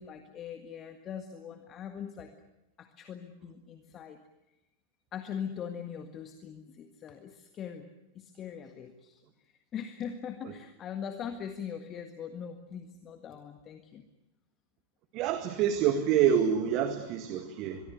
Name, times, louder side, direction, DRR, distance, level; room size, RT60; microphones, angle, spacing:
voice 1, 0.0-2.3 2.8-4.2 5.1-7.9 8.1-9.2 9.7-14.0, left 8 dB, 30° left, 7 dB, 1.7 m, -41 dB
voice 2, 15.1-17.8, right 8 dB, 40° right, 8 dB, 1.8 m, -27 dB
23.5 x 23.5 x 8.0 m, 0.93 s
figure-of-eight pair, 90°, 0 cm